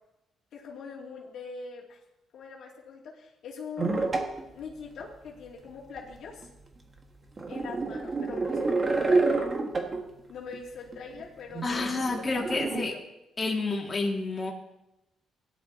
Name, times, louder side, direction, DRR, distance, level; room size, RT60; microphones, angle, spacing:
voice 1, 0.5-2.0 2.3-4.1 4.5-6.5 7.5-9.6 10.3-12.3 12.6-13.0, left 5 dB, 70° left, -2 dB, 2.6 m, -43 dB
sound 1, 3.8-4.4 5.0-5.1 6.0-6.1 6.4-6.5 7.4-10.0 10.5-10.6 10.9-11.2 11.5-12.8, right 3 dB, 30° right, 1.7 m, -28 dB
voice 2, 11.6-12.9 13.4-14.5, left 3 dB, 30° left, -1 dB, 2.1 m, -29 dB
17.0 x 11.5 x 2.9 m, 0.92 s
cardioid pair, 90°, 0 cm